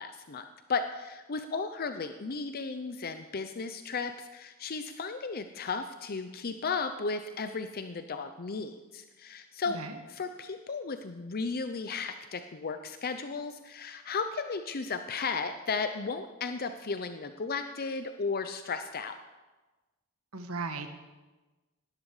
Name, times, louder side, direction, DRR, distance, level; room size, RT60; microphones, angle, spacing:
voice 1, 0.0-9.8 10.1-19.1, left 4 dB, 45° left, 8 dB, 0.6 m, -35 dB
voice 2, 9.7-10.0 20.3-20.9, right 3 dB, 70° right, 7 dB, 1.4 m, -36 dB
18.0 x 12.5 x 4.9 m, 1.2 s
head